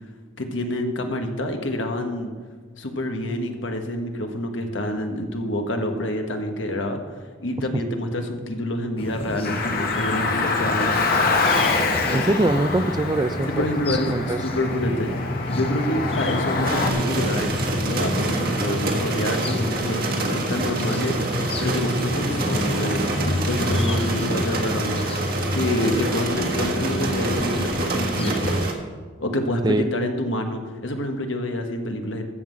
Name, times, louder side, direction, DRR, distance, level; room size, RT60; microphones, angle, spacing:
voice 1, 0.4-2.3 2.8-11.4 13.5-15.1 15.5-17.5 17.9-25.2 25.5-28.6 29.2-32.2, left 1 dB, 75° left, 4 dB, 1.4 m, -27 dB
sound 1, 9.0-28.7, left 1 dB, 30° left, 0.7 m, -29 dB
Car, 9.4-16.9, left 3 dB, 50° left, 1.3 m, -25 dB
voice 2, 12.1-13.7 14.1-14.4 29.6-29.9, right 2 dB, 20° right, 11 dB, 0.4 m, -22 dB
sound 2, 16.6-28.7, right 3 dB, 50° right, 1.6 m, -27 dB
13.5 x 5.7 x 7.5 m, 1.5 s
head